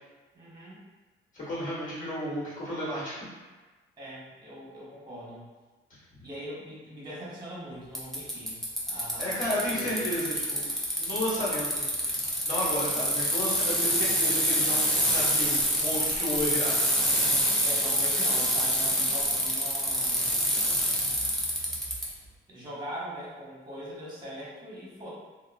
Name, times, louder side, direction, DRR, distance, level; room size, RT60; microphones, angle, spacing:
voice 1, 0.3-0.8 4.0-5.5 6.2-8.6 8.9-9.4 9.7-10.2 17.6-20.3 22.5-25.1, equal, 20° right, -6 dB, 1.1 m, -41 dB
voice 2, 1.3-3.2 9.2-11.8 12.5-16.7, equal, 40° left, -9 dB, 1.2 m, -32 dB
Bicycle, 7.9-22.1, equal, ahead, 0.6 m, -26 dB
2.8 x 2.0 x 2.4 m, 1.3 s
cardioid pair, 90°, 20 cm